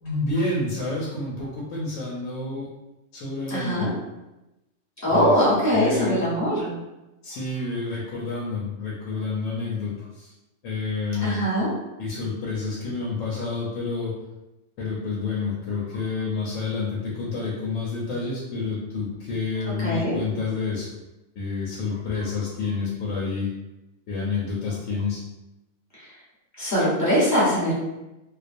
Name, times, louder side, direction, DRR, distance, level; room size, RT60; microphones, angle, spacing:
voice 1, 0.0-2.7 3.1-3.9 5.1-5.3 5.7-6.3 7.2-10.3 10.6-11.5 12.0-14.1 14.8-20.9 21.4-23.5 24.1-25.2, left 4 dB, 90° left, -5 dB, 1.0 m, -29 dB
voice 2, 3.5-3.9 5.0-6.7 11.2-11.7 19.8-20.1 26.6-27.7, equal, 15° left, -9 dB, 0.8 m, -21 dB
2.3 x 2.2 x 2.5 m, 0.98 s
omnidirectional pair, 1.3 m